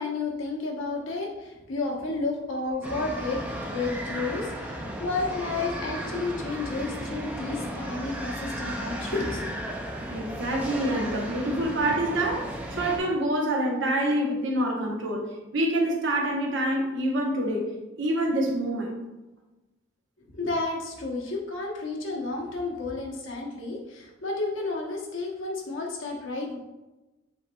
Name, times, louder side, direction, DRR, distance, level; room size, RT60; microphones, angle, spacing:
voice 1, 0.0-3.4 3.7-9.4 20.4-26.6, left 3 dB, 70° left, -1 dB, 0.9 m, -31 dB
sound 1, 2.8-13.0, equal, 5° right, 0.4 m, -35 dB
voice 2, 10.1-17.7 18.0-19.0, right 1 dB, 65° right, 0 dB, 0.9 m, -26 dB
7.4 x 2.9 x 2.2 m, 1.1 s
head